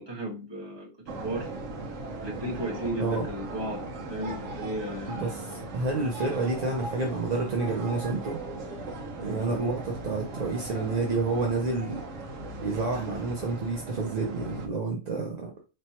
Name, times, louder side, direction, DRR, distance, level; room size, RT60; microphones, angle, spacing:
voice 1, 0.0-1.5 2.2-5.7, right 1 dB, 20° right, 1.4 m, -35 dB
sound 1, 1.1-14.7, right 2 dB, 65° right, 1.2 m, -38 dB
voice 2, 5.1-8.4 9.2-12.0 12.6-15.5, right 3 dB, 40° right, 0.6 m, -29 dB
4.3 x 3.1 x 2.9 m
omnidirectional pair, 1.4 m